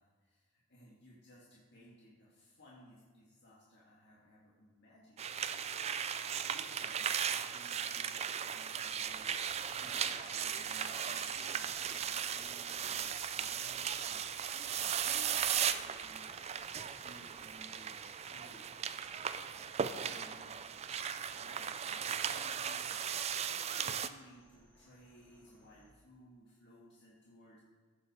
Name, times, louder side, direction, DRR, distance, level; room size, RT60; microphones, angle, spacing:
voice 1, 0.0-5.2 6.5-16.3 16.6-18.9 20.0-20.6 21.2-27.6, equal, 55° left, -5 dB, 1.7 m, -60 dB
sound 1, 5.2-24.1, right 8 dB, 30° right, 0.3 m, -37 dB
sound 2, 8.8-15.8, left 2 dB, 40° left, 1.9 m, -58 dB
sound 3, 8.9-25.9, equal, 5° left, 1.5 m, -65 dB
15.0 x 5.7 x 4.7 m, 1.5 s
head